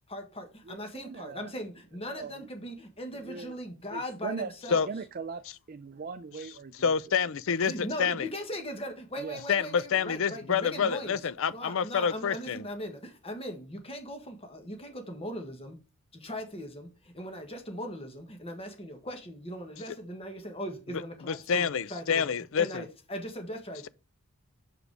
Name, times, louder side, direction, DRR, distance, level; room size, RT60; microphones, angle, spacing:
voice 1, 0.1-4.9 7.6-15.8 16.1-23.9, equal, 25° left, 1.5 m, -39 dB
voice 2, 0.7-1.5 2.1-2.5 3.3-3.6 3.9-7.0 9.2-9.4, right 5 dB, 40° right, 0.4 m, -40 dB
voice 3, 6.8-7.7 8.0-8.1 9.5-9.6 9.9-12.6 21.5-22.8, left 7 dB, 60° left, 0.5 m, -27 dB
6.4 x 5.1 x 4.7 m
head